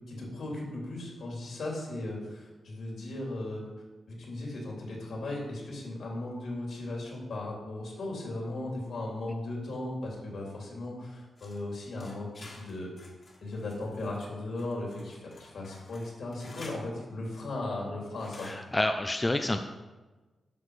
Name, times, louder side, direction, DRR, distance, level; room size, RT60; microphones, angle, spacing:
voice 1, 0.1-3.6 4.1-13.1 13.4-18.5, left 2 dB, 65° left, -2 dB, 3.2 m, -37 dB
sound 1, 11.4-16.8 18.2-18.6, left 2 dB, 40° left, 1.9 m, -52 dB
voice 2, 18.4-19.6, left 1 dB, 15° left, 6 dB, 0.5 m, -28 dB
11.0 x 6.5 x 5.0 m, 1.2 s
wide cardioid pair, 125°, 0 cm